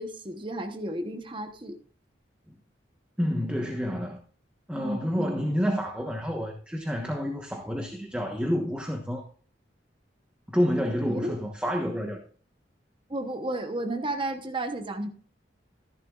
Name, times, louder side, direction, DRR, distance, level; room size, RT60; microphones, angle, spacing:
voice 1, 0.0-1.8 4.8-5.3 11.1-11.4 13.1-15.1, right 1 dB, 25° right, 1.0 m, -32 dB
voice 2, 3.2-4.2 4.7-9.2 10.5-12.2, equal, 5° right, 1.2 m, -29 dB
14.5 x 11.0 x 2.5 m
head